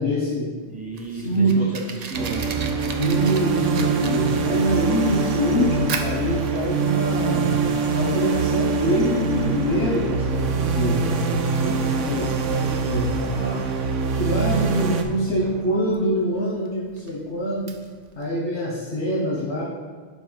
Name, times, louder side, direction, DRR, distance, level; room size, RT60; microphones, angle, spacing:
voice 1, 0.0-0.5 1.1-1.6 3.0-7.5 7.9-12.3 12.6-13.7 14.1-17.8 18.1-19.7, equal, 70° left, -6 dB, 1.3 m, -25 dB
voice 2, 0.6-2.6 11.4-12.5, right 2 dB, 5° right, -2 dB, 0.9 m, -35 dB
Fire, 0.6-18.3, right 5 dB, 55° right, 0.4 m, -39 dB
sound 1, 2.1-15.0, right 5 dB, 80° right, 1.0 m, -24 dB
11.5 x 4.0 x 3.3 m, 1.5 s
omnidirectional pair, 1.3 m